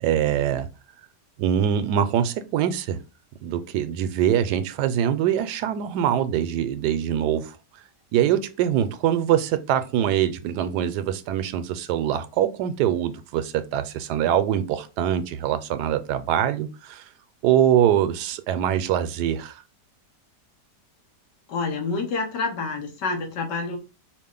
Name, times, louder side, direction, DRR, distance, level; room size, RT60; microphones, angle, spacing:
voice 1, 0.0-0.7 1.4-3.0 3.4-7.6 8.1-17.0 17.4-19.6, right 10 dB, 75° right, 1.1 m, -23 dB
voice 2, 21.5-23.8, left 4 dB, 75° left, 1.7 m, -28 dB
4.8 x 2.5 x 3.7 m
omnidirectional pair, 1.9 m